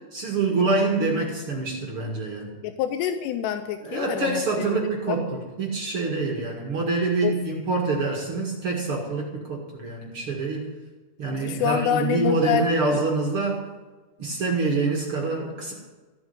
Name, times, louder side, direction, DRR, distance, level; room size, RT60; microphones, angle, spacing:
voice 1, 0.1-2.5 3.8-10.7 11.2-13.7 14.2-15.7, right 3 dB, 45° right, -1 dB, 2.0 m, -26 dB
voice 2, 2.6-5.2 7.2-7.3 11.4-12.7, left 8 dB, 80° left, 8 dB, 2.7 m, -26 dB
15.0 x 7.8 x 9.5 m, 1.3 s
omnidirectional pair, 5.0 m